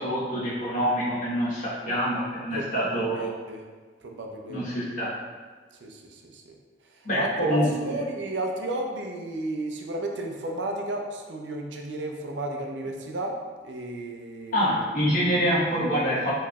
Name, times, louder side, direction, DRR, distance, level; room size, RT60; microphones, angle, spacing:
voice 1, 0.0-3.4 4.5-5.2 7.0-8.0 14.5-16.3, equal, 45° left, -8 dB, 1.2 m, -26 dB
voice 2, 2.5-3.6 4.0-4.6 5.8-6.6 7.2-7.6 7.8-13.4 13.6-14.7, right 2 dB, 90° right, 2 dB, 0.5 m, -33 dB
4.6 x 3.1 x 2.3 m, 1.4 s
head